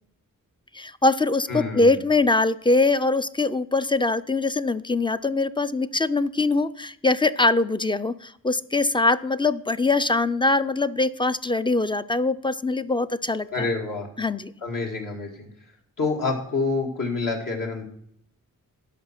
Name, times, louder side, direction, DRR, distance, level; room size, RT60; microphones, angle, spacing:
voice 1, 0.7-13.7 14.2-14.5, left 3 dB, 15° left, 13 dB, 0.3 m, -23 dB
voice 2, 1.5-2.0 13.5-14.1 14.6-15.5 16.0-17.8, left 3 dB, 70° left, 1 dB, 2.2 m, -27 dB
11.0 x 6.1 x 5.9 m, 0.72 s
wide cardioid pair, 130°, 34 cm